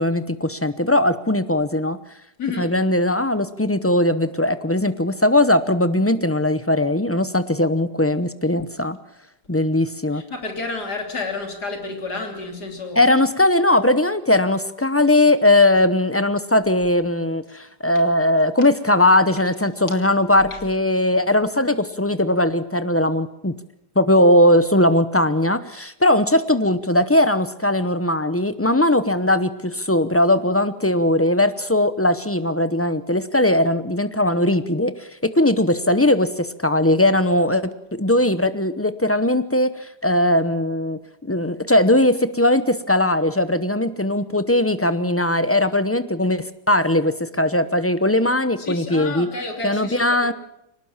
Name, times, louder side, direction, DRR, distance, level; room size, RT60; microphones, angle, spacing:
voice 1, 0.0-2.0 2.6-9.0 9.5-10.2 13.0-23.5 24.0-41.0 41.3-49.3 49.6-50.3, left 1 dB, 20° left, 12 dB, 0.4 m, -19 dB
voice 2, 2.4-2.7 10.1-13.0 48.6-50.1, left 3 dB, 70° left, 4 dB, 3.8 m, -30 dB
23.0 x 19.5 x 7.3 m, 0.82 s
omnidirectional pair, 1.8 m